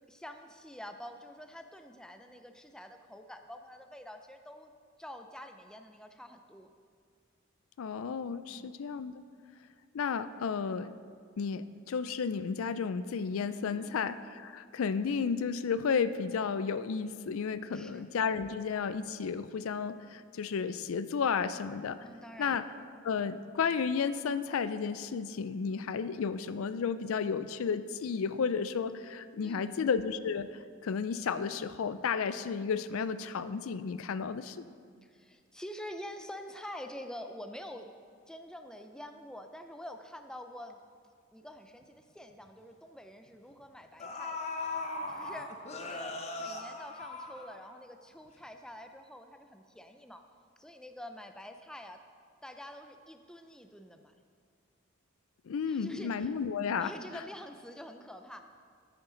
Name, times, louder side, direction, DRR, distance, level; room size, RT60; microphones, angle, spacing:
voice 1, 0.1-4.7 5.0-6.7 8.5-8.7 13.7-14.1 17.7-18.0 22.0-22.6 29.4-29.9 35.0-37.9 38.3-40.8 41.3-44.5 45.1-45.5 45.8-50.2 50.6-52.0 52.4-54.1 55.7-56.3 56.7-58.4, equal, 5° left, 6 dB, 0.4 m, -47 dB
voice 2, 7.8-9.1 9.9-10.9 11.4-22.0 22.4-22.6 23.0-30.5 30.8-34.7 55.5-56.9, left 6 dB, 75° left, 13 dB, 0.4 m, -32 dB
sound 1, 41.8-41.9 42.3-42.5 43.5-43.6 44.0-47.9 48.3-48.4, left 2 dB, 30° left, 0.8 m, -39 dB
13.0 x 9.0 x 3.9 m, 2.1 s
head